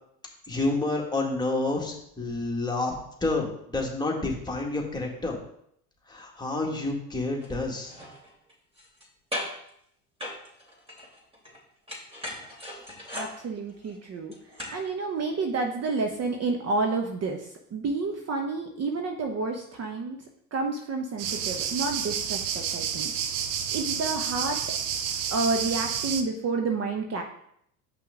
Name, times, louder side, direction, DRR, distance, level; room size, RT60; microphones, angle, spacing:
voice 1, 0.5-2.9 3.2-5.4 6.1-7.9, left 2 dB, 10° left, -2 dB, 1.9 m, -29 dB
sound 1, 7.4-7.5 7.8-9.1 9.3-9.7 10.2-11.6 11.9-14.9 15.2-15.3, left 1 dB, 10° right, 3.2 m, -38 dB
voice 2, 13.1-14.3 14.7-23.1 23.7-24.6 25.0-27.2, right 3 dB, 35° right, 3 dB, 1.0 m, -30 dB
sound 2, 21.2-26.2, right 8 dB, 70° right, 0.9 m, -30 dB
7.0 x 5.7 x 3.7 m, 0.70 s
hypercardioid pair, 75°, 45 cm